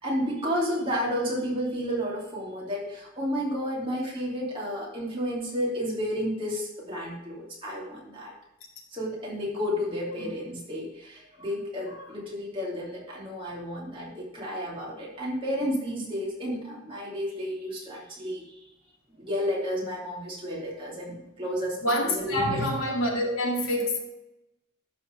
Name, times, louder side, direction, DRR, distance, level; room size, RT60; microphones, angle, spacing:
voice 1, 0.0-8.3 8.9-18.6 19.2-21.8 22.1-22.7, equal, 25° right, -5 dB, 2.7 m, -31 dB
voice 2, 21.8-24.0, left 1 dB, 90° left, -1 dB, 2.2 m, -27 dB
12.0 x 4.3 x 5.2 m, 0.91 s
head